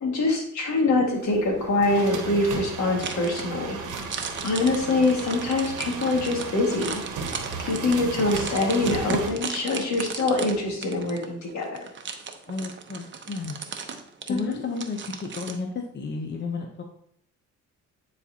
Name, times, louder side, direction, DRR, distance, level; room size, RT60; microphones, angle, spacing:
voice 1, 0.0-3.8 4.4-7.0 7.6-11.9 14.3-14.6, left 2 dB, 65° left, 1 dB, 1.9 m, -24 dB
sound 1, 1.1-9.3, right 5 dB, 90° right, 1.2 m, -35 dB
sound 2, 3.0-15.6, right 5 dB, 40° right, 0.8 m, -36 dB
voice 2, 12.5-13.6 14.3-16.8, left 4 dB, 35° left, 3 dB, 0.8 m, -32 dB
9.7 x 4.2 x 2.8 m, 0.68 s
cardioid pair, 90°, 30 cm